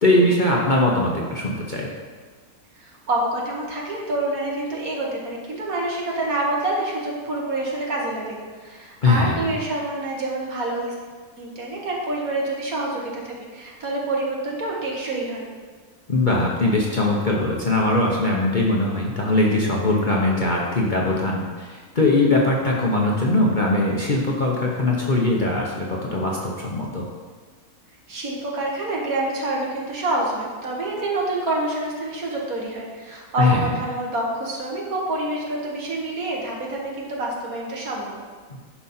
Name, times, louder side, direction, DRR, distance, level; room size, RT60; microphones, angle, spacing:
voice 1, 0.0-1.9 9.0-9.5 16.1-27.1 33.4-33.8 38.5-38.6, left 2 dB, 35° left, -3 dB, 0.9 m, -21 dB
voice 2, 2.8-10.9 11.4-15.4 28.1-38.2, right 2 dB, 65° right, -2 dB, 1.9 m, -27 dB
10.5 x 5.3 x 4.3 m, 1.5 s
omnidirectional pair, 1.7 m